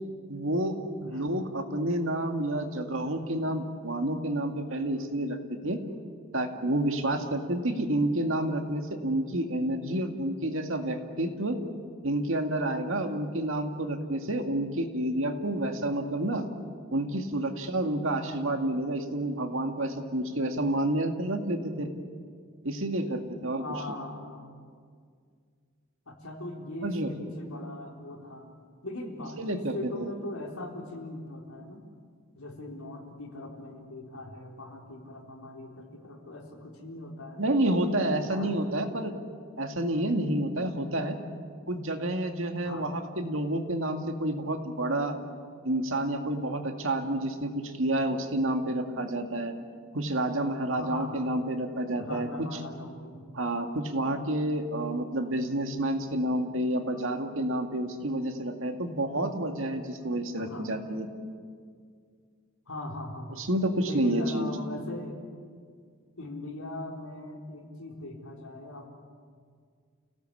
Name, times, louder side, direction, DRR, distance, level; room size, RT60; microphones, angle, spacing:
voice 1, 0.3-5.8 6.3-11.6 12.0-16.4 16.9-21.9 22.6-23.6 26.8-27.1 29.4-30.1 37.4-39.1 39.6-41.2 41.7-45.1 45.6-49.5 49.9-52.5 53.3-61.1 63.3-64.5, right 1 dB, 65° right, 5 dB, 2.1 m, -29 dB
voice 2, 23.6-24.5 26.1-28.5 28.8-31.8 32.4-37.4 38.2-38.6 42.6-42.9 50.8-51.2 52.0-53.3 60.4-60.7 62.7-63.5 63.8-65.2 66.2-68.9, left 1 dB, 80° left, 0 dB, 3.9 m, -40 dB
30.0 x 17.5 x 8.6 m, 2.1 s
head